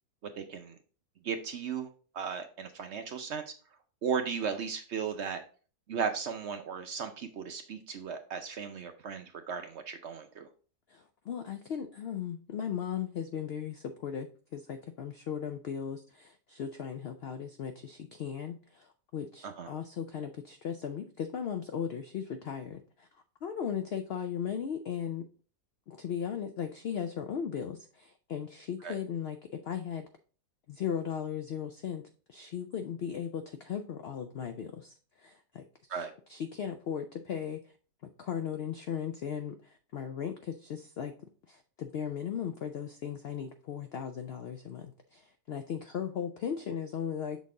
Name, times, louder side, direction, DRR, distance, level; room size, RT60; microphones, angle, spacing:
voice 1, 0.3-0.8 1.2-1.9 2.1-3.5 4.0-5.4 5.9-10.5 19.4-19.7 28.8-29.0 35.9-36.1, right 6 dB, 60° right, 7 dB, 0.7 m, -36 dB
voice 2, 10.9-23.1 23.4-25.2 25.9-30.0 30.7-32.0 32.3-35.6 35.9-37.7 38.0-41.1 41.5-47.4, left 8 dB, 75° left, 7 dB, 0.5 m, -37 dB
6.4 x 4.1 x 3.7 m, 0.39 s
omnidirectional pair, 1.6 m